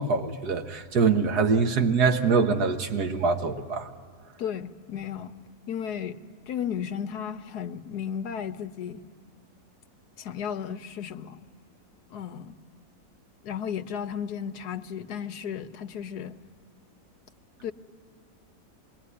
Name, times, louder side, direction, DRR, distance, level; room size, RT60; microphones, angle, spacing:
voice 1, 0.0-3.9, right 5 dB, 80° right, 1.9 m, -24 dB
voice 2, 4.4-5.3 5.7-6.2 6.5-9.0 10.2-11.4 12.1-12.5 13.4-16.4 17.6-17.7, left 8 dB, 85° left, 1.5 m, -34 dB
27.0 x 22.0 x 9.8 m
omnidirectional pair, 1.7 m